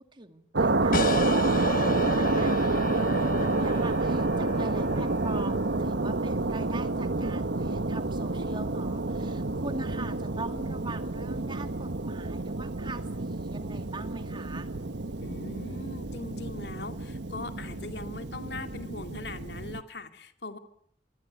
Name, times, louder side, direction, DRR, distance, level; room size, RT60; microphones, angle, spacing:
voice 1, 0.0-14.7, right 2 dB, 30° right, 8 dB, 2.2 m, -42 dB
sound 1, 0.5-19.8, right 2 dB, 90° right, 1.2 m, -29 dB
sound 2, 0.9-6.1, left 3 dB, 55° left, 1.2 m, -35 dB
voice 2, 15.2-20.6, left 3 dB, 70° left, 7 dB, 2.4 m, -40 dB
26.0 x 23.5 x 9.6 m, 0.71 s
head